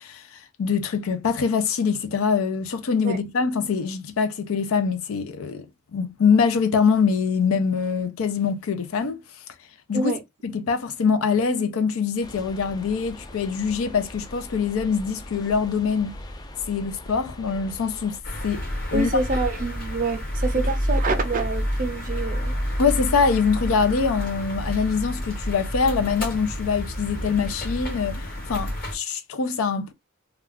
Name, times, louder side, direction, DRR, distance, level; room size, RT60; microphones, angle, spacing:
voice 1, 0.0-9.2 9.9-10.1 10.4-16.2 16.7-18.2 18.4-18.6 18.9-19.1 22.8-29.9, left 5 dB, 85° left, 0.5 m, -24 dB
sound 1, 12.2-18.2, left 1 dB, 20° left, 0.3 m, -41 dB
sound 2, 18.2-28.9, equal, 45° left, 1.2 m, -29 dB
voice 2, 18.9-22.5, right 3 dB, 40° right, 0.5 m, -26 dB
2.3 x 2.3 x 3.4 m
head